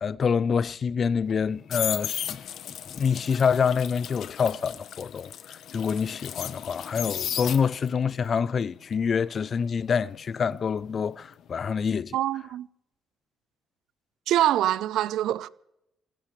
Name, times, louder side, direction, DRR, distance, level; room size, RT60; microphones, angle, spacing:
voice 1, 0.0-2.4 2.9-12.2, left 6 dB, 50° left, 0.6 m, -26 dB
sound 1, 1.3-8.0 8.4-11.3 11.5-11.9, left 10 dB, 70° left, 0.9 m, -35 dB
voice 2, 12.1-12.7 14.3-15.5, right 12 dB, 85° right, 0.6 m, -24 dB
25.5 x 16.5 x 3.3 m
cardioid pair, 90°, 0 cm